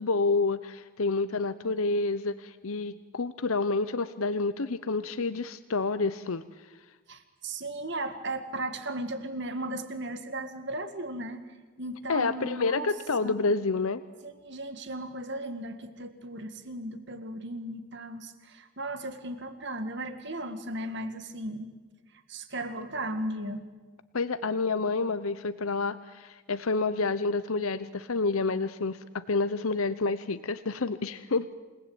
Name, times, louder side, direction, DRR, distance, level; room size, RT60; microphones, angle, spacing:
voice 1, 0.0-6.4 12.1-14.0 24.1-31.5, left 3 dB, 75° left, 13 dB, 0.8 m, -29 dB
voice 2, 7.1-11.5 11.8-12.9 13.2-13.4 14.2-21.7 22.3-23.6, right 1 dB, 50° right, 9 dB, 2.1 m, -36 dB
28.0 x 19.0 x 8.9 m, 1.3 s
head